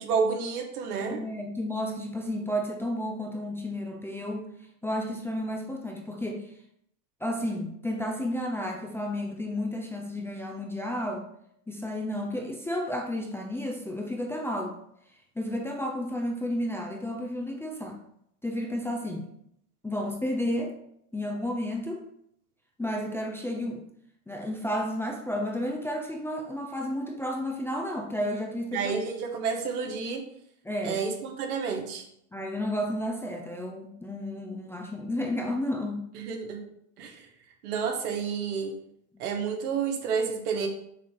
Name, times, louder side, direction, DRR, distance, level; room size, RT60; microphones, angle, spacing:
voice 1, 0.0-1.2 28.7-30.2 30.8-32.0 36.1-36.6 37.0-37.3 37.6-38.7 39.2-40.7, right 5 dB, 80° right, 3 dB, 1.5 m, -30 dB
voice 2, 1.1-4.5 4.8-6.5 7.2-11.3 11.7-14.8 15.4-18.0 18.4-19.2 19.8-20.8 21.1-22.1 22.8-23.8 24.3-28.9 30.6-31.0 32.3-36.1, left 1 dB, 5° left, 1 dB, 0.5 m, -32 dB
6.6 x 2.8 x 5.2 m, 0.72 s
supercardioid pair, 110°, 45 cm